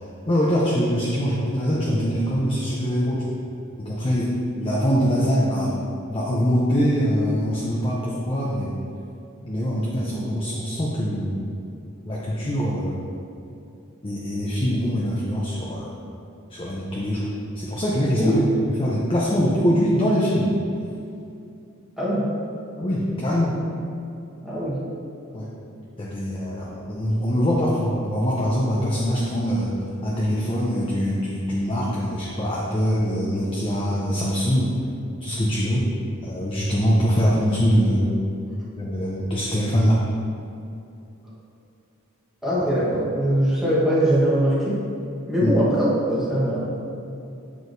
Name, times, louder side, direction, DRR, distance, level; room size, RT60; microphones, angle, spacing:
voice 1, 0.3-3.4 3.8-5.7 6.1-8.7 9.4-11.4 12.0-13.1 14.0-15.9 16.5-17.3 17.6-18.4 18.8-20.5 22.8-23.5 25.3-25.5 26.0-29.7 30.0-34.7 35.2-35.9 36.2-38.2 38.8-40.0 45.4-45.6, equal, 25° left, -5 dB, 0.6 m, -23 dB
voice 2, 22.0-22.3 24.4-24.8 42.4-44.8 45.3-46.6, equal, ahead, -9 dB, 1.2 m, -21 dB
7.7 x 4.6 x 2.6 m, 2.6 s
head